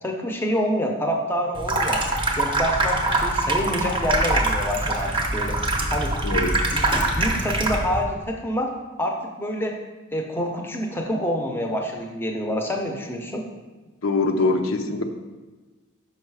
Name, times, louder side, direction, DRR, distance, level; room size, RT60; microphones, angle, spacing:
voice 1, 0.0-2.0 2.4-5.6 5.9-6.1 6.7-6.9 7.2-8.7 9.0-9.8 10.1-13.4, equal, 10° left, 2 dB, 0.7 m, -27 dB
Water tap faucet / Sink (filling or washing), 1.6-8.0, right 2 dB, 25° right, 0.7 m, -23 dB
voice 2, 6.2-6.6 14.0-15.0, left 3 dB, 70° left, 5 dB, 0.6 m, -23 dB
5.7 x 5.5 x 4.7 m, 1.2 s
head